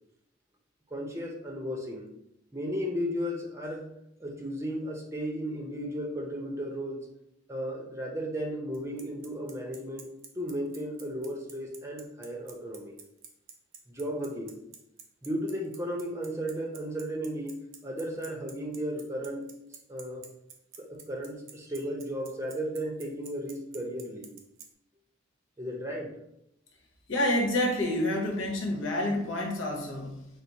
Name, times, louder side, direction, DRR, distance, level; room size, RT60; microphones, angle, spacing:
voice 1, 0.9-2.1 2.5-3.9 4.2-7.1 7.5-13.0 13.9-14.6 15.2-20.2 20.8-24.3 25.6-26.1, equal, 15° right, 0 dB, 0.7 m, -35 dB
Bicycle, 8.7-24.7, right 7 dB, 85° right, 0.8 m, -47 dB
voice 2, 27.1-30.3, left 1 dB, 75° left, 0 dB, 1.1 m, -28 dB
6.0 x 2.1 x 4.0 m, 0.82 s
head